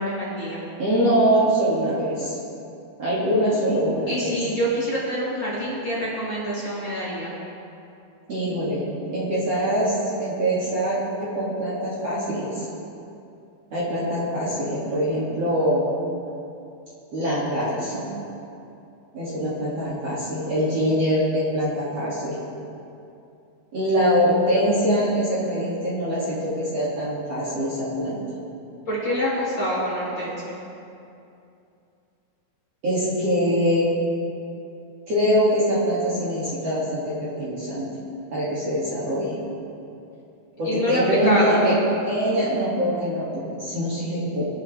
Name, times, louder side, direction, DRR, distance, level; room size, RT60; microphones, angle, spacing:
voice 1, 0.0-0.6 4.1-7.3 28.9-30.5 40.6-41.7, equal, 30° left, -10 dB, 3.8 m, -26 dB
voice 2, 0.8-2.4 3.0-4.3 8.3-8.8 9.1-12.6 13.7-15.8 17.1-18.1 19.1-22.3 23.7-28.2 32.8-33.9 35.1-37.9 38.3-39.4 40.6-41.7 42.1-44.4, equal, 40° right, -9 dB, 3.1 m, -23 dB
23.0 x 10.0 x 3.4 m, 2.7 s
omnidirectional pair, 4.7 m